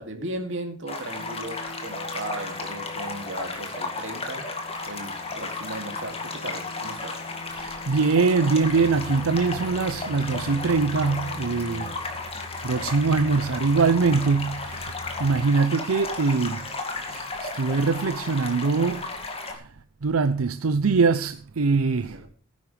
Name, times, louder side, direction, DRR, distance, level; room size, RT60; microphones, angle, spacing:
voice 1, 0.0-4.5 4.8-7.2 22.0-22.3, right 1 dB, 60° right, 2.7 m, -36 dB
sound 1, 0.9-19.5, left 3 dB, 25° left, 2.2 m, -34 dB
sound 2, 1.2-12.0, left 2 dB, 45° left, 2.9 m, -43 dB
voice 2, 7.6-11.9 12.6-14.9 15.2-16.7 17.1-19.1 19.5-19.7 20.0-22.2, right 4 dB, 80° right, 0.6 m, -23 dB
sound 3, 8.7-15.5, left 1 dB, 90° left, 2.6 m, -43 dB
18.0 x 10.5 x 3.4 m
head